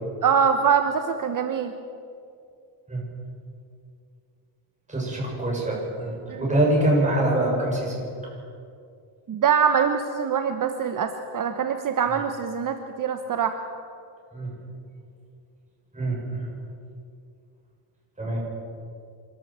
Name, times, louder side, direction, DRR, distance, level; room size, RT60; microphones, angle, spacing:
voice 1, 0.2-1.7 6.3-6.4 9.3-13.6, right 7 dB, 40° right, 7 dB, 1.2 m, -23 dB
voice 2, 4.9-8.0 14.3-14.5 15.9-16.5 18.2-18.4, right 1 dB, 15° right, -3 dB, 7.1 m, -24 dB
28.0 x 12.5 x 7.5 m, 2.4 s
cardioid pair, 130°, 49 cm